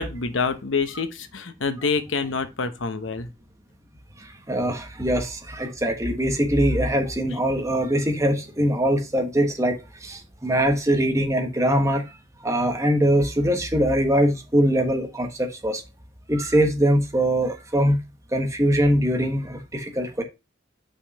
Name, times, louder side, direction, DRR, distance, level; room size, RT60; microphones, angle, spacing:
voice 1, 0.0-3.3, left 4 dB, 75° left, 1.0 m, -26 dB
voice 2, 4.2-12.0 12.4-15.8 16.3-18.0 18.3-20.2, equal, 15° right, 1.3 m, -22 dB
5.6 x 5.3 x 4.1 m
head